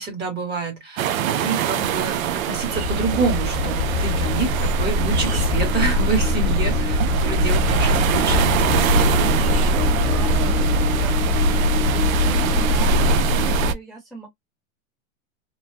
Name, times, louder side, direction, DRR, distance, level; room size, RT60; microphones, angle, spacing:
voice 1, 0.0-9.1, right 4 dB, 25° right, 1.2 m, -27 dB
sound 1, 1.0-13.7, right 11 dB, 80° right, 0.6 m, -25 dB
sound 2, 2.0-13.7, left 1 dB, 50° left, 1.1 m, -22 dB
sound 3, 2.7-11.2, left 2 dB, 55° right, 1.2 m, -27 dB
voice 2, 9.6-14.3, right 1 dB, ahead, 1.0 m, -40 dB
3.1 x 2.1 x 2.7 m
hypercardioid pair, 135°, 41 cm